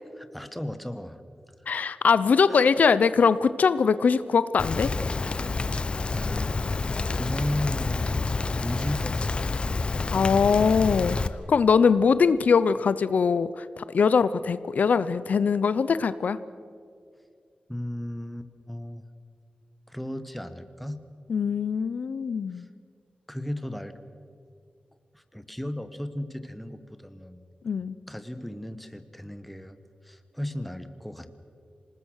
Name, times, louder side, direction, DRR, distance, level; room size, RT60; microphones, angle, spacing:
voice 1, 0.1-1.2 2.5-2.6 6.1-6.5 6.8-9.7 17.7-19.0 19.9-21.0 22.5-22.7 23.3-24.0 25.1-27.5 28.1-29.8 30.0-31.3, left 1 dB, ahead, 10 dB, 1.2 m, -35 dB
voice 2, 1.7-4.9 10.1-11.2 11.5-16.4 21.3-22.7 27.6-28.0, left 5 dB, 70° left, 15 dB, 0.6 m, -22 dB
Rain, 4.6-11.3, left 3 dB, 40° left, 0.8 m, -28 dB
26.5 x 19.5 x 6.4 m, 2.3 s
wide cardioid pair, 130°, 3 cm